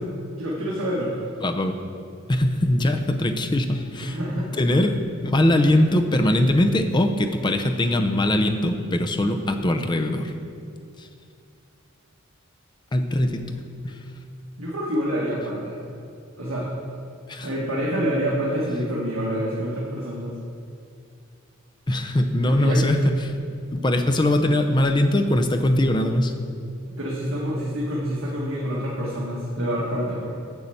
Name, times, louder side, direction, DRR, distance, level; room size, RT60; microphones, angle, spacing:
voice 1, 0.4-1.1 4.0-4.6 14.6-15.8 16.4-16.7 17.4-20.3 22.5-22.8 26.9-30.3, equal, 75° right, -6 dB, 1.5 m, -27 dB
voice 2, 1.4-1.8 2.3-10.3 11.0-11.1 12.9-13.4 13.8-14.0 17.3-17.5 21.9-23.3 23.7-26.3, left 1 dB, 20° left, 6 dB, 0.5 m, -21 dB
8.1 x 5.6 x 7.7 m, 2.5 s
head